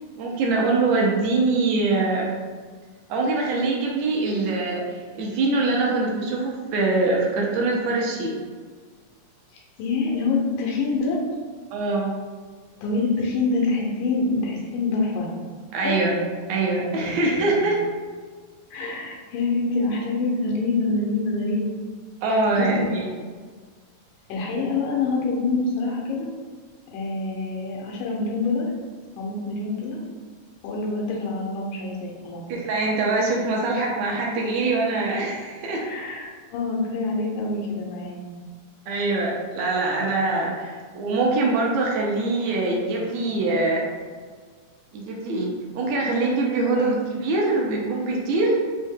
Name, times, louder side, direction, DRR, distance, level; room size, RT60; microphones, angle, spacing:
voice 1, 0.1-2.3 3.1-8.4 11.7-12.1 15.7-16.2 16.5-17.8 22.2-23.1 32.5-35.8 38.9-43.8 44.9-48.6, right 3 dB, 80° right, -2 dB, 1.6 m, -23 dB
voice 2, 9.5-11.2 12.8-15.3 15.8-16.0 17.0-17.6 18.7-21.8 22.3-22.7 24.3-26.3 26.9-28.7 29.2-30.0 30.6-32.4 35.8-38.3 46.7-47.0, left 3 dB, 90° left, -2 dB, 2.3 m, -26 dB
5.3 x 2.1 x 3.4 m, 1.5 s
omnidirectional pair, 3.6 m